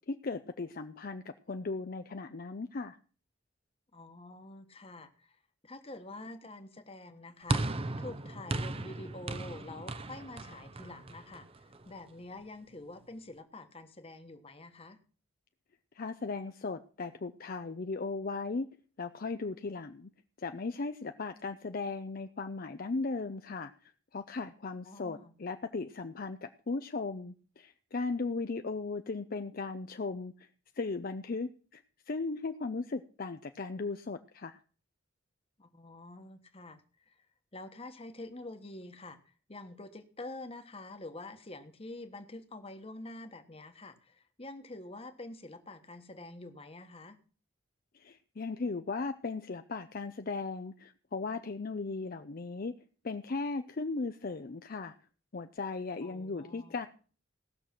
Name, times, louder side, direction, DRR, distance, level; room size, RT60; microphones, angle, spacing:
voice 1, 0.1-3.0 15.9-18.7 19.0-20.1 20.4-30.5 30.7-34.6 48.0-52.7 53.0-54.9 55.3-56.9, left 3 dB, 50° left, 8 dB, 0.6 m, -37 dB
voice 2, 3.9-5.4 5.6-11.5 11.8-15.0 24.8-25.3 35.6-36.8 37.1-37.2 37.5-47.2 56.0-56.8, left 2 dB, 30° left, 7 dB, 1.3 m, -47 dB
sound 1, 7.5-11.9, right 2 dB, 30° right, 0.7 m, -36 dB
18.0 x 6.6 x 5.9 m, 0.40 s
head